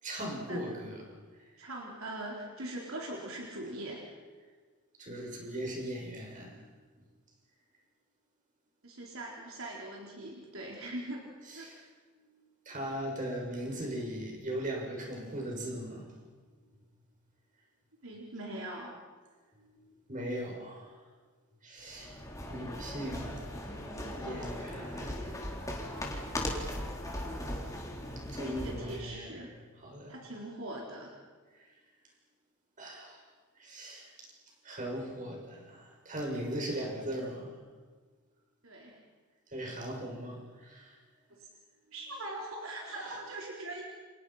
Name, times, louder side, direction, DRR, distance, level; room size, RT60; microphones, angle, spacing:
voice 1, 0.0-1.0 5.0-6.6 11.5-11.8 12.6-16.2 19.6-20.9 21.6-22.1 22.5-23.8 24.2-25.3 26.1-26.2 27.4-27.7 28.3-29.4 29.8-30.1 32.8-33.2 33.6-34.1 34.6-37.5 39.5-41.0 43.1-43.2, right 1 dB, 35° right, -1 dB, 6.8 m, -39 dB
voice 2, 1.6-4.2 8.8-11.3 11.5-11.9 18.0-18.9 28.1-29.5 30.1-31.1 38.6-39.0 41.4-41.5 41.9-43.8, right 1 dB, 70° right, -2 dB, 4.3 m, -41 dB
sound 1, 21.9-29.1, left 1 dB, 15° left, 3.8 m, -38 dB
30.0 x 28.0 x 5.9 m, 1.5 s
head